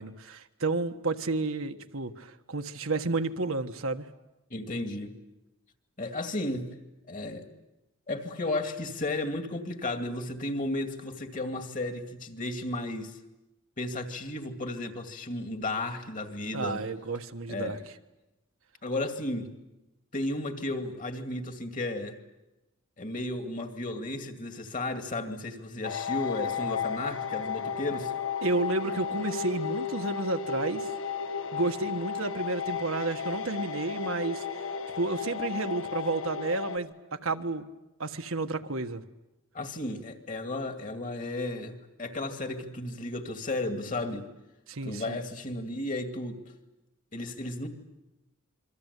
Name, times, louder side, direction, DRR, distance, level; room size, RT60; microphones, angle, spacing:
voice 1, 0.0-4.1 16.5-17.8 28.4-30.9 31.5-34.4 35.0-37.7 38.0-39.0 44.7-45.2, right 3 dB, 75° right, 6 dB, 1.4 m, -31 dB
voice 2, 4.5-5.2 6.0-6.7 7.1-7.5 8.1-13.2 13.8-16.8 17.5-17.8 18.8-19.5 20.1-22.2 23.0-28.1 39.5-44.3 44.8-46.4 47.1-47.7, left 2 dB, 40° left, 6 dB, 2.4 m, -34 dB
sound 1, 25.8-36.8, left 6 dB, 70° left, 1.7 m, -34 dB
27.0 x 23.5 x 8.3 m, 1.0 s
head